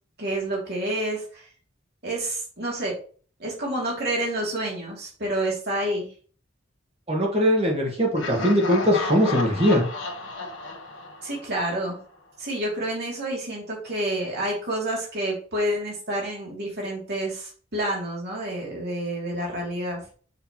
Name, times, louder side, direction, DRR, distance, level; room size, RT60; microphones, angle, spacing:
voice 1, 0.2-1.4 2.0-3.0 3.4-6.1 11.2-12.0 12.4-20.0, right 1 dB, 55° right, -2 dB, 2.7 m, -29 dB
voice 2, 7.1-9.8, equal, 30° right, 0 dB, 1.5 m, -21 dB
Laughter, 8.1-12.0, left 3 dB, 75° left, 1.3 m, -33 dB
6.7 x 5.6 x 3.0 m, 0.43 s
head